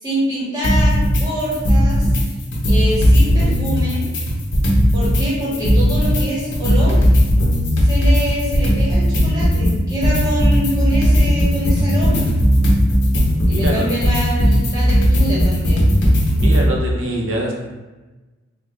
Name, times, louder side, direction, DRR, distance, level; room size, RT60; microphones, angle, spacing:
voice 1, 0.0-2.1 2.7-4.1 4.9-7.0 7.8-12.3 13.4-15.9, equal, 20° right, -8 dB, 1.2 m, -25 dB
sound 1, 0.6-1.2 1.5-2.2 2.5-5.2 5.5-16.6, equal, 60° left, 0.7 m, -16 dB
voice 2, 13.3-13.9 16.2-17.5, right 1 dB, 65° right, 0 dB, 0.6 m, -24 dB
3.3 x 2.4 x 3.1 m, 1.2 s
head